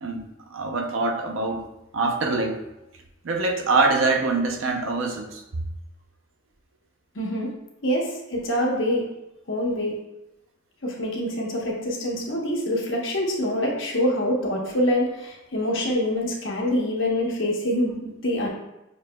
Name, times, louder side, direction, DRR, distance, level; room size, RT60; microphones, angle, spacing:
voice 1, 0.0-1.7 1.9-2.6 3.2-5.4, right 3 dB, 75° right, 3 dB, 0.6 m, -24 dB
voice 2, 7.1-7.5 7.8-9.0 9.5-9.9 10.8-18.5, left 1 dB, 65° left, -2 dB, 1.0 m, -25 dB
6.5 x 2.8 x 2.2 m, 0.92 s
head